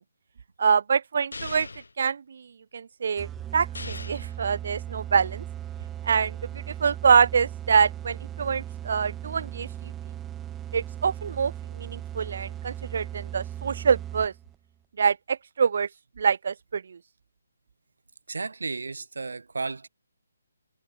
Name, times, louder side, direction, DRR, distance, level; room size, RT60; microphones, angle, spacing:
voice 1, 0.6-1.7 2.0-2.5 2.7-5.4 6.0-9.9 10.7-14.3 15.0-15.9 16.2-17.0, right 6 dB, 55° right, 0.4 m, -25 dB
sound 1, 1.3-1.9 3.7-4.3, left 3 dB, 90° left, 0.9 m, -38 dB
sound 2, 3.2-14.6, right 11 dB, 10° right, 2.1 m, -38 dB
voice 2, 18.3-19.9, right 4 dB, 80° right, 1.7 m, -33 dB
hypercardioid pair, 160°, 0 cm